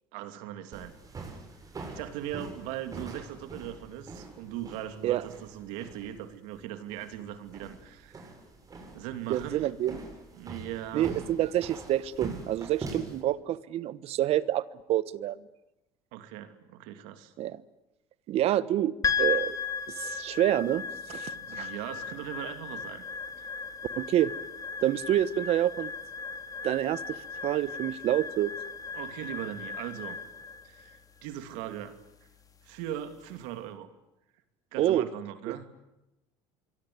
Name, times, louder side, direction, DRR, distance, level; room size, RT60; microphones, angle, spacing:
voice 1, 0.1-0.9 1.9-8.3 8.9-9.7 10.3-11.2 16.1-17.3 21.3-23.0 23.4-23.5 28.9-30.2 30.6-32.0 32.6-33.9 34.7-35.7, right 11 dB, 80° right, 9 dB, 2.9 m, -39 dB
sound 1, 0.7-13.2, right 3 dB, 30° right, 7.6 m, -44 dB
voice 2, 9.3-10.0 10.9-15.4 17.4-17.6 18.3-19.6 19.9-21.7 24.0-24.3 24.8-25.9 26.6-28.5 34.8-35.1 35.5-35.6, right 12 dB, 55° right, 17 dB, 1.2 m, -28 dB
sound 2, 19.0-33.4, left 6 dB, 30° left, 3.2 m, -36 dB
26.0 x 23.0 x 9.6 m, 0.94 s
supercardioid pair, 100°, 12 cm